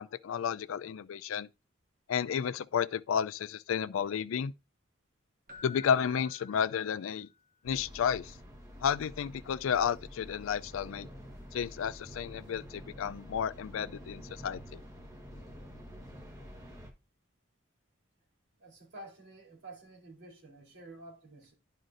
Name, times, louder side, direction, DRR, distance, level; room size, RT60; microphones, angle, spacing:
voice 1, 0.0-1.5 2.1-4.5 5.6-7.3 7.6-8.3 8.8-11.1 11.5-14.8, left 7 dB, 90° left, 0.4 m, -32 dB
Keyboard (musical), 5.5-7.4 10.7-10.9, left 4 dB, 40° right, 1.1 m, -52 dB
sound 1, 7.6-16.9, equal, 15° right, 1.2 m, -48 dB
voice 2, 18.6-21.5, right 2 dB, 60° right, 2.9 m, -50 dB
11.0 x 5.0 x 2.5 m
head